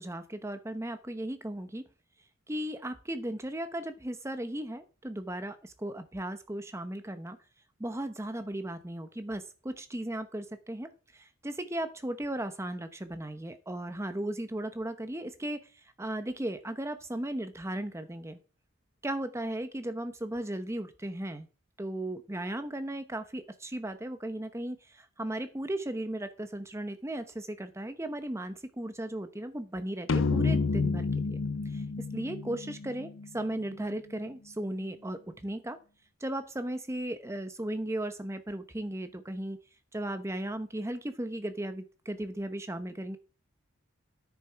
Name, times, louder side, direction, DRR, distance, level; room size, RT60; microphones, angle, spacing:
voice 1, 0.0-1.9 2.5-7.4 7.8-15.6 16.0-18.4 19.0-21.5 21.8-31.8 32.1-35.8 36.2-39.6 39.9-43.2, right 1 dB, 15° right, 10 dB, 0.8 m, -36 dB
sound 1, 30.1-33.6, left 4 dB, 65° left, 0.6 m, -30 dB
9.9 x 6.8 x 4.7 m, 0.37 s
head